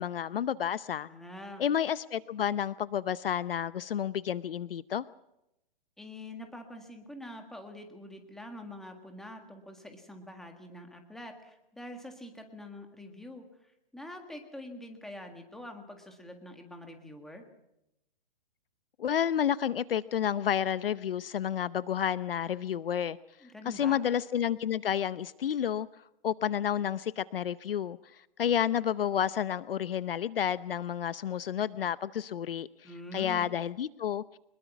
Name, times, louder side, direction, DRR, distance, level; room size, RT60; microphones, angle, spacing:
voice 1, 0.0-1.1 1.6-5.0 19.0-23.2 23.7-25.9 26.2-28.0 28.4-32.7 33.1-34.2, left 9 dB, 75° left, 17 dB, 0.8 m, -30 dB
voice 2, 1.1-1.6 6.0-17.4 23.4-24.0 32.8-33.5, left 1 dB, ahead, 4 dB, 1.7 m, -45 dB
24.5 x 21.5 x 6.0 m, 0.85 s
hypercardioid pair, 170°, 29 cm